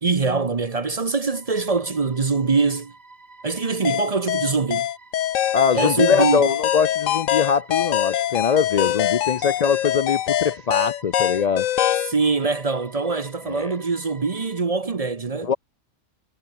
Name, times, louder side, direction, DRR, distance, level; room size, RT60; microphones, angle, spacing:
voice 1, 0.0-2.9 3.4-4.9 5.7-6.5 12.1-15.5, right 4 dB, 35° right, 0.8 m, -23 dB
sound 1, 1.3-14.6, right 3 dB, 50° right, 3.1 m, -49 dB
sound 2, 3.9-12.1, left 11 dB, 85° left, 1.1 m, -23 dB
voice 2, 5.5-11.7 13.5-13.7 15.4-15.6, left 6 dB, 50° left, 0.4 m, -22 dB
omnidirectional pair, 1.3 m